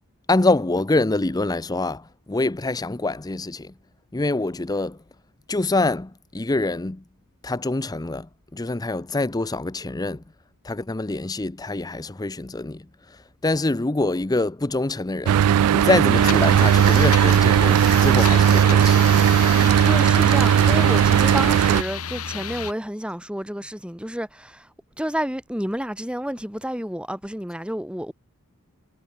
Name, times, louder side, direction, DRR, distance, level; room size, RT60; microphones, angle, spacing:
voice 1, 0.3-3.7 4.1-5.0 5.5-7.0 7.4-10.2 10.6-15.4 15.7-19.1, left 2 dB, 15° left, 0.6 m, -25 dB
Mechanical fan, 15.3-21.8, right 9 dB, 90° right, 0.3 m, -17 dB
sound 1, 16.1-22.7, left 7 dB, 80° left, 3.2 m, -32 dB
voice 2, 19.6-24.7 25.0-28.1, equal, 5° right, 2.3 m, -30 dB
head